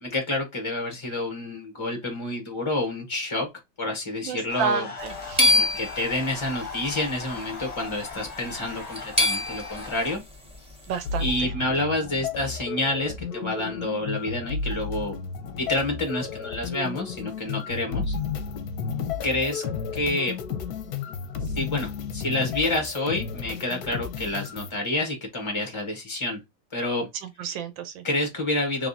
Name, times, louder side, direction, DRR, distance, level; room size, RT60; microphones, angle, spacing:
voice 1, 0.0-3.5 3.8-4.9 5.5-10.2 11.2-15.1 15.6-18.2 19.2-19.6 19.9-20.3 21.5-26.4 26.7-27.1 27.4-27.5 28.0-28.9, left 2 dB, 50° left, 0.3 m, -28 dB
voice 2, 4.2-5.7 10.9-11.5 27.2-28.0, right 6 dB, 80° right, 1.4 m, -31 dB
sound 1, 4.5-10.2, left 4 dB, 35° left, 0.7 m, -38 dB
sound 2, 5.0-6.7 7.7-7.9 8.2-8.3 8.8-10.0, left 2 dB, 5° right, 0.6 m, -24 dB
sound 3, 11.0-24.8, left 5 dB, 70° left, 1.0 m, -33 dB
3.5 x 3.3 x 2.6 m
omnidirectional pair, 2.1 m